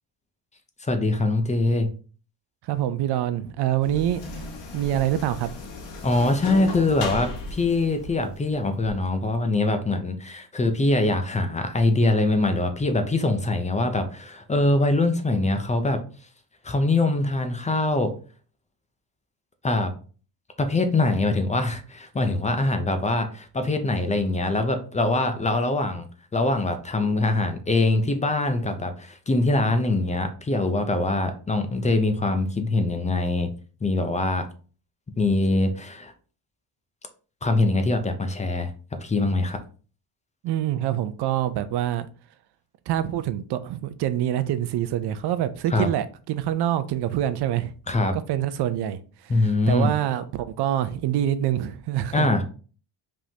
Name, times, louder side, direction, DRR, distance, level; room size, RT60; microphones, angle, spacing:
voice 1, 0.9-1.9 6.0-16.0 16.6-18.2 19.6-19.9 20.6-26.1 26.3-33.5 33.8-34.4 35.2-36.1 37.4-38.7 39.0-39.6 45.7-45.9 47.9-48.2 49.3-49.9 52.1-52.4, left 2 dB, 15° left, 0.5 m, -23 dB
voice 2, 2.6-4.5 4.7-5.5 40.4-42.1 42.9-47.7 48.1-52.3, right 11 dB, 65° right, 0.6 m, -26 dB
sound 1, 3.8-9.0, left 3 dB, 80° left, 1.4 m, -36 dB
5.0 x 3.7 x 2.8 m
cardioid pair, 145°, 42 cm